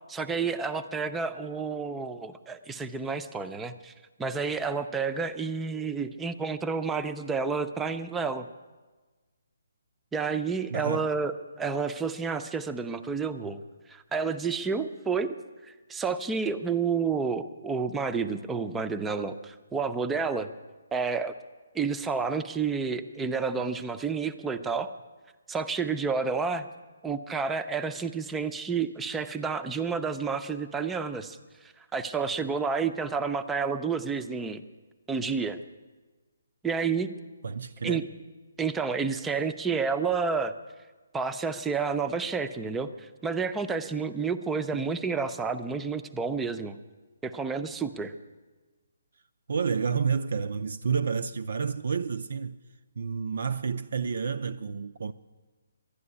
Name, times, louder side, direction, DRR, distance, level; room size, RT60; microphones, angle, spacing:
voice 1, 0.1-3.9 4.2-8.5 10.1-13.6 13.9-15.4 15.6-20.5 20.9-21.3 21.7-24.9 25.5-26.7 27.0-34.6 35.1-35.6 36.6-37.1 37.8-38.0 38.6-40.5 41.1-46.8 47.2-48.1, right 5 dB, 5° right, 0.5 m, -30 dB
voice 2, 10.7-11.1 37.4-38.0 44.7-44.8 49.5-52.6 53.0-55.1, right 6 dB, 60° right, 0.5 m, -30 dB
12.0 x 11.5 x 9.7 m
hypercardioid pair, 170°, 0 cm